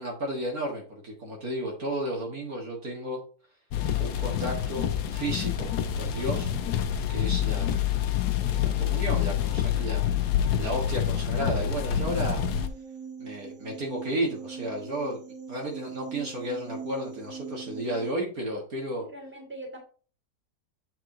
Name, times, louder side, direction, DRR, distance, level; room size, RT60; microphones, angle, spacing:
voice 1, 0.0-3.2 4.0-6.5 7.1-7.8 8.5-10.2 10.6-12.4 13.2-15.2 15.5-19.0, right 1 dB, 60° right, 0 dB, 2.0 m, -33 dB
sound 1, 3.7-12.7, left 9 dB, 75° left, 1.3 m, -27 dB
sound 2, 11.4-18.1, right 6 dB, 90° right, 1.6 m, -42 dB
voice 2, 19.0-19.8, right 1 dB, 5° right, 0 dB, 2.6 m, -41 dB
7.6 x 4.8 x 3.8 m, 0.39 s
omnidirectional pair, 1.8 m